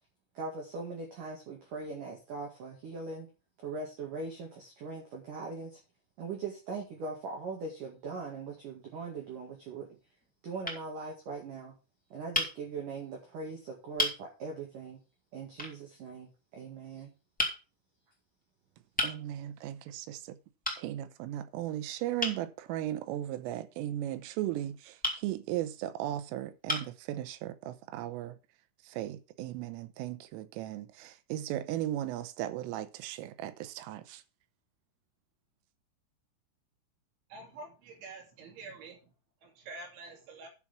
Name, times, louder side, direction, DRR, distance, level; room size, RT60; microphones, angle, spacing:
voice 1, 0.3-3.3 3.6-5.8 6.2-9.9 10.4-11.7 12.1-15.0 15.3-17.1, right 4 dB, 50° right, 3.0 m, -40 dB
sound 1, 8.9-9.5 10.2-10.4 10.6-10.8 12.3-12.5 13.4-13.5 14.0-14.2 15.6-15.8 17.4-17.6 19.0-19.2 20.6-20.8 22.2-22.4 25.0-25.2 26.1-26.2 26.7-27.0, left 1 dB, 5° left, 1.2 m, -32 dB
voice 2, 19.0-20.4 20.8-28.4 28.8-34.2, right 13 dB, 90° right, 3.4 m, -37 dB
voice 3, 37.3-39.1 39.4-40.5, right 3 dB, 65° right, 4.9 m, -47 dB
11.0 x 6.1 x 5.7 m
omnidirectional pair, 5.8 m